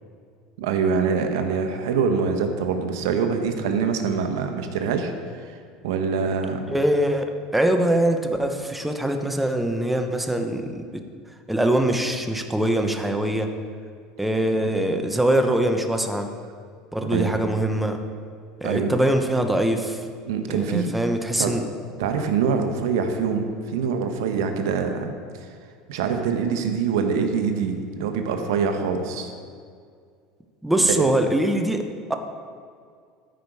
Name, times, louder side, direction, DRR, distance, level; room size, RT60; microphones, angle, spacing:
voice 1, 0.6-5.1 5.5-5.6 5.8-6.6 14.6-14.7 17.1-17.3 18.6-18.9 20.3-20.9 21.4-21.6 22.0-25.1 25.9-29.3 30.8-31.1, right 6 dB, 85° right, 6 dB, 1.0 m, -24 dB
voice 2, 6.7-11.0 11.5-13.5 14.2-16.3 16.9-18.0 18.6-20.1 20.5-21.6 30.6-32.1, right 1 dB, 5° right, 5 dB, 0.8 m, -23 dB
13.0 x 5.1 x 4.8 m, 2.2 s
supercardioid pair, 120°, 2 cm